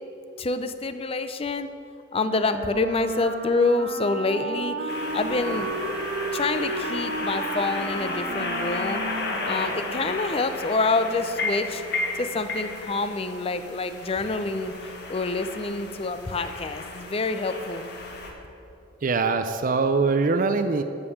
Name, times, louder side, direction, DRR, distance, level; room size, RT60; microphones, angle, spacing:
voice 1, 0.4-1.7 2.1-5.7 6.3-9.0 9.4-11.8 12.1-14.7 15.1-17.8, left 3 dB, 30° left, 10 dB, 0.5 m, -27 dB
Wind instrument woodwind instrument, 2.2-10.5, right 2 dB, 75° right, 1.2 m, -33 dB
sound 1, 4.9-18.3, left 2 dB, 55° left, 1.6 m, -33 dB
voice 2, 19.0-20.8, right 4 dB, 45° right, 9 dB, 0.4 m, -23 dB
13.5 x 5.3 x 7.1 m, 2.9 s
head